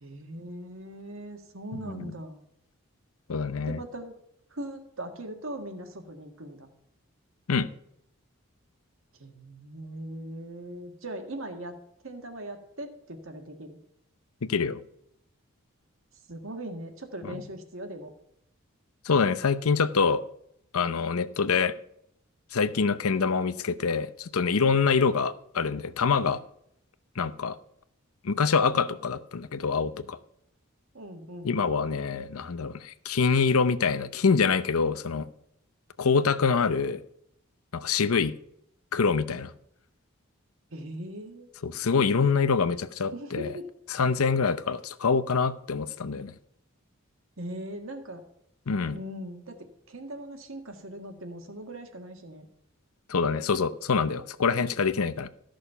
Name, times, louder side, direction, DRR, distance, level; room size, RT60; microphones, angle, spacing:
voice 1, 0.0-2.4 3.7-4.2 4.5-6.7 9.2-11.7 12.0-13.8 16.3-18.1 30.9-31.6 40.7-41.5 43.1-43.7 47.4-48.2 48.9-52.5, right 1 dB, 70° right, 5 dB, 1.7 m, -40 dB
voice 2, 1.7-2.1 3.3-3.8 7.5-7.7 14.4-14.8 17.2-17.4 19.1-20.2 20.7-21.7 22.5-26.4 27.2-27.6 28.2-30.2 31.4-35.3 36.0-37.0 37.7-38.3 38.9-39.5 41.6-43.5 43.9-46.3 48.7-49.0 53.1-55.3, left 5 dB, 90° left, 14 dB, 0.7 m, -25 dB
14.0 x 6.4 x 5.6 m, 0.73 s
head